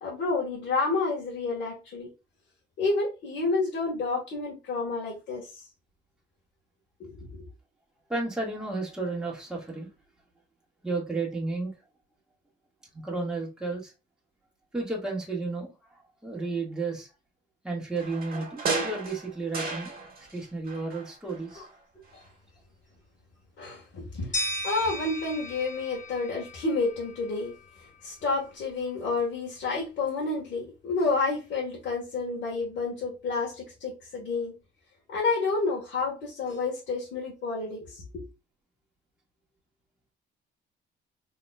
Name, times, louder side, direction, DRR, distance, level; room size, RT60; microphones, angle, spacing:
voice 1, 0.0-2.1 2.8-5.5 7.0-7.4 21.5-21.6 23.6-24.4 24.6-27.5 28.0-34.5 35.1-38.2, left 3 dB, 75° left, 1.4 m, -30 dB
voice 2, 8.1-9.9 10.8-11.7 12.9-13.9 14.7-17.1 17.6-19.9 20.3-21.7, right 3 dB, 5° right, 1.6 m, -32 dB
sound 1, 18.0-20.4 20.7-21.7 22.1-22.2, right 3 dB, 45° right, 1.5 m, -34 dB
sound 2, 24.3-27.3, equal, 40° left, 1.2 m, -35 dB
4.2 x 2.9 x 2.2 m
cardioid pair, 90°, 20 cm